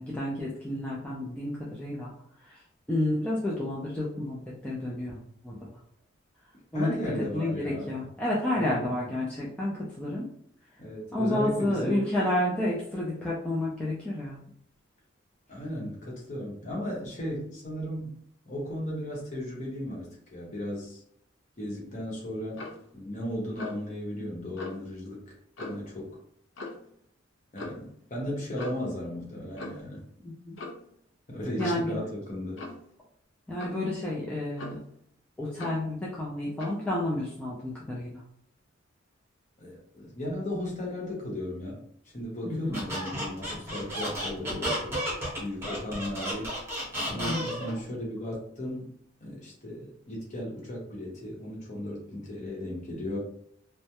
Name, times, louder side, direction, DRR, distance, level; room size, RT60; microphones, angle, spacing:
voice 1, 0.0-2.1 2.5-2.6 2.9-5.6 6.7-6.9 7.2-10.3 11.1-14.4 30.2-30.6 31.6-32.0 33.5-34.8 35.4-38.2 42.5-42.8 47.1-47.4, left 1 dB, 5° left, -6 dB, 0.3 m, -30 dB
voice 2, 6.7-7.9 8.6-9.0 10.8-12.1 15.5-21.0 21.6-22.7 22.9-25.3 25.6-26.2 27.5-30.1 31.3-32.7 39.6-41.8 42.1-45.0 45.4-46.6 47.1-48.9 49.2-53.2, left 1 dB, 40° left, -3 dB, 0.8 m, -36 dB
Clock, 22.5-22.8 23.6-23.9 24.6-24.8 25.6-25.9 26.6-26.9 27.6-27.8 28.6-28.9 29.6-29.9 30.6-30.9 31.6-31.8 32.6-32.9 33.6-33.8 34.6-35.0 35.6-35.9 36.6-36.8, left 2 dB, 65° left, 0.5 m, -41 dB
Squeak, 42.7-47.8, equal, 10° right, 0.8 m, -32 dB
2.2 x 2.0 x 2.8 m, 0.67 s
head